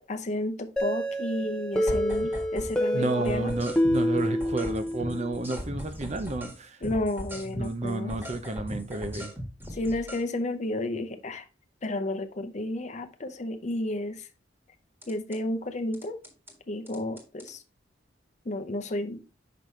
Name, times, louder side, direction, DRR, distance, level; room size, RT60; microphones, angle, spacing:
voice 1, 0.1-3.5 6.8-8.1 9.7-11.4 11.8-14.3 15.1-16.2 16.7-17.6 18.5-19.2, left 1 dB, 40° left, 7 dB, 0.7 m, -32 dB
sound 1, 0.8-5.4, equal, 5° left, 0.8 m, -28 dB
sound 2, 1.9-2.8 3.0-6.6 6.8-10.2 15.0-15.4 15.9-16.5 16.9-17.5, equal, 10° right, 1.6 m, -38 dB
voice 2, 2.9-6.8 7.5-9.3, right 2 dB, 40° right, 9 dB, 0.7 m, -31 dB
5.9 x 5.4 x 3.2 m, 0.31 s
head